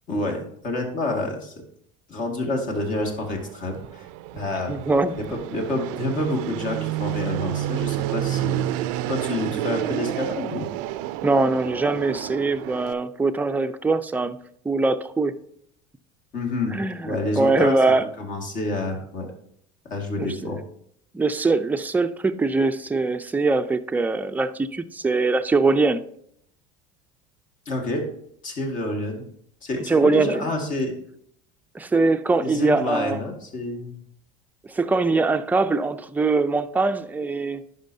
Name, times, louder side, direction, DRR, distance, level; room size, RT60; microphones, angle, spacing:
voice 1, 0.1-1.5 2.1-4.1 4.3-4.8 5.1-10.7 16.3-16.7 17.0-17.8 18.2-19.3 19.9-20.6 27.7-28.1 28.4-29.2 29.6-30.9 32.4-33.9, left 2 dB, 50° left, 2 dB, 2.0 m, -28 dB
Fixed-wing aircraft airplane, 2.7-12.9, right 13 dB, 75° right, 0.4 m, -30 dB
voice 2, 4.7-5.1 11.2-14.4 14.6-15.4 16.7-18.0 20.2-20.6 21.1-26.0 29.9-30.5 31.7-33.2 34.7-37.6, right 3 dB, 10° right, 8 dB, 0.5 m, -22 dB
10.0 x 5.6 x 2.7 m, 0.68 s
supercardioid pair, 95°, 17 cm